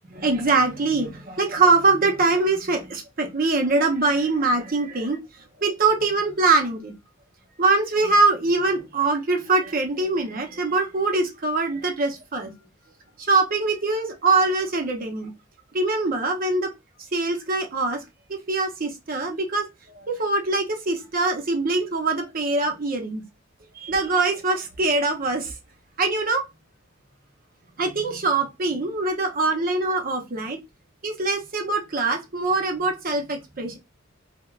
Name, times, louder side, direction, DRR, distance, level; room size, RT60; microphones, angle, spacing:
voice 1, 0.1-5.2 5.6-6.9 7.6-12.5 13.2-15.3 15.7-16.7 17.1-18.0 18.5-19.7 20.0-23.2 23.8-25.5 26.0-26.4 27.8-30.6 31.0-33.8, right 3 dB, 45° right, 0.6 m, -23 dB
3.3 x 2.1 x 2.3 m
head